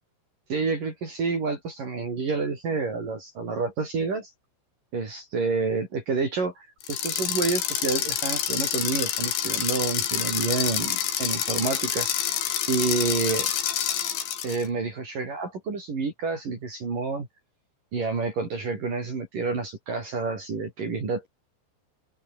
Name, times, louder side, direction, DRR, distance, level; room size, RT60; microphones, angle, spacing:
voice 1, 0.5-4.3 4.9-12.1 12.7-13.5 14.4-17.3 17.9-21.3, right 4 dB, 45° right, 6.9 m, -29 dB
sound 1, 6.8-14.6, left 10 dB, 70° left, 5.0 m, -27 dB
open air
omnidirectional pair, 5.3 m